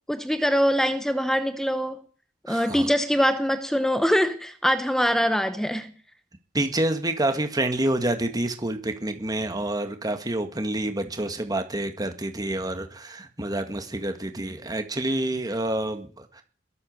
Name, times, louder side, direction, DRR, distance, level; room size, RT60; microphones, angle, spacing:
voice 1, 0.1-2.0 2.5-5.9, equal, 5° left, 0.8 m, -23 dB
voice 2, 2.5-2.9 6.5-16.4, right 1 dB, 20° right, 1.9 m, -28 dB
21.5 x 8.3 x 6.6 m
head